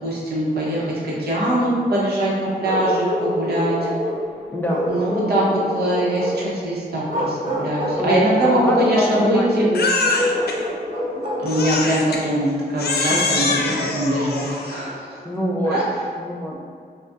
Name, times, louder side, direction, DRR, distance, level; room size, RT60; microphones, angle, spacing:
voice 1, 0.0-3.9 4.9-9.7 11.4-15.2 15.6-15.9, right 1 dB, 80° right, -6 dB, 1.0 m, -22 dB
Bark, 2.6-4.2 4.7-6.4 7.0-8.0 8.4-9.3 10.1-11.8, equal, 50° right, 1.1 m, -26 dB
voice 2, 4.5-4.8 8.0-8.2 8.5-9.5 9.7-9.9 10.2-10.3 13.3-13.4 15.2-15.7 16.2-16.5, equal, 10° left, -3 dB, 0.4 m, -24 dB
Crying sobbing, 9.7-10.6 11.5-12.2 12.8-14.9, left 3 dB, 75° left, 0.5 m, -23 dB
5.8 x 2.4 x 2.5 m, 2.1 s
wide cardioid pair, 175°, 16 cm